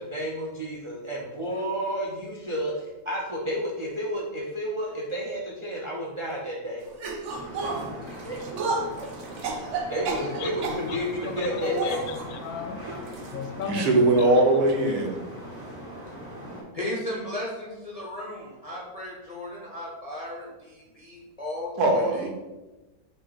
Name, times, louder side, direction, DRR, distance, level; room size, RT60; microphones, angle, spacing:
voice 1, 0.0-6.8 8.0-8.4 9.9-12.0 12.9-13.0, equal, 45° right, -2 dB, 0.4 m, -31 dB
sound 1, 7.0-10.9 11.6-12.3 13.1-13.3 13.6-13.7 14.7-14.8, right 3 dB, 60° right, 0.8 m, -32 dB
sound 2, 7.3-16.6, equal, 30° right, 1.3 m, -40 dB
voice 2, 11.2-12.8 13.3-14.3, left 6 dB, 80° left, 7 dB, 1.0 m, -35 dB
voice 3, 13.6-15.2 21.8-22.3, right 2 dB, 80° right, 3 dB, 1.3 m, -21 dB
voice 4, 16.7-22.3, left 1 dB, 40° left, -4 dB, 0.5 m, -35 dB
6.1 x 2.2 x 3.9 m, 1.1 s
omnidirectional pair, 1.6 m